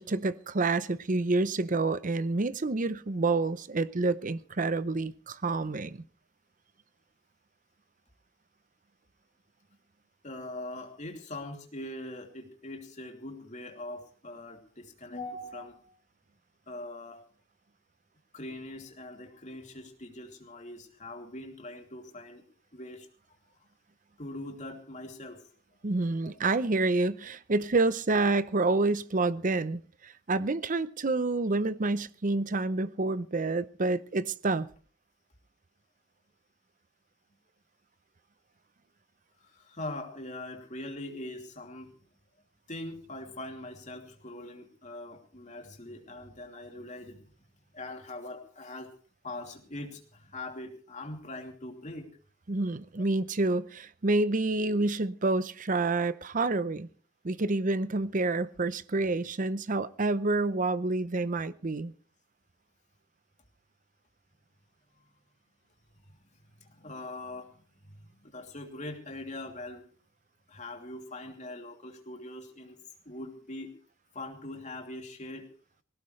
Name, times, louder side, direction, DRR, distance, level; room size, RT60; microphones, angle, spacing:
voice 1, 0.0-6.0 25.8-34.7 52.5-56.9 57.2-61.9, right 3 dB, 40° right, 0.7 m, -28 dB
voice 2, 10.2-15.9 16.7-17.2 18.3-22.4 22.7-23.1 24.2-25.5 39.4-41.9 42.7-47.3 47.7-48.9 49.2-52.1 55.2-55.3 66.6-67.5 67.8-69.9 70.5-72.8 73.0-73.8 74.1-75.5, left 2 dB, 35° left, 2.8 m, -42 dB
20.0 x 17.5 x 3.2 m
head